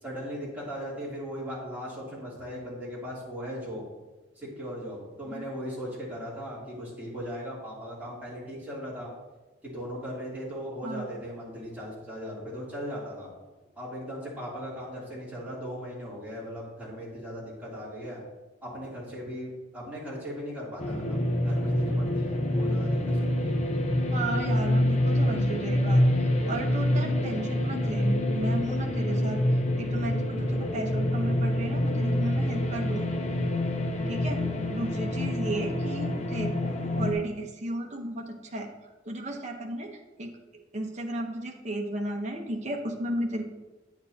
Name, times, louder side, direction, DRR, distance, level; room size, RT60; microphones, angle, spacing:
voice 1, 0.0-3.8 4.3-9.1 9.6-13.3 13.7-18.2 18.6-23.6 34.2-34.6, equal, 10° right, -8 dB, 2.9 m, -38 dB
sound 1, 20.8-37.1, left 1 dB, 35° left, 0.8 m, -26 dB
voice 2, 24.1-26.0 26.5-29.4 29.8-33.2 34.1-34.4 34.7-38.7 39.1-39.9 40.2-40.3 40.7-43.6, right 1 dB, 40° right, 1 dB, 1.0 m, -34 dB
8.6 x 8.5 x 2.9 m, 1.1 s
head